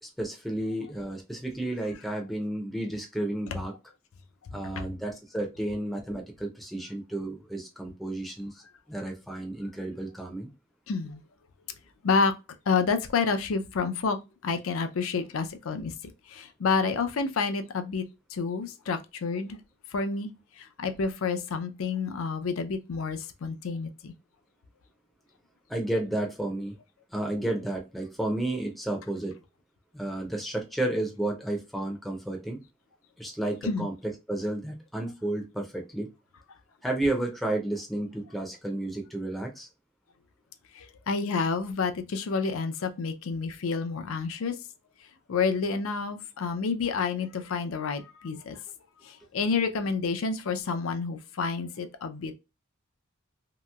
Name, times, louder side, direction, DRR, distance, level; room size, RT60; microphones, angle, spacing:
voice 1, 0.0-3.7 4.5-8.6 8.9-10.5 25.7-26.8 27.1-29.4 29.9-32.6 33.2-36.1 36.8-39.7, right 1 dB, ahead, 0.5 m, -32 dB
voice 2, 10.9-11.2 12.0-12.3 12.7-15.9 16.3-18.0 18.3-19.6 19.9-20.3 20.6-24.1 33.6-33.9 40.7-44.6 45.3-48.6 49.0-52.3, left 5 dB, 75° left, 0.5 m, -29 dB
2.9 x 2.9 x 2.2 m
head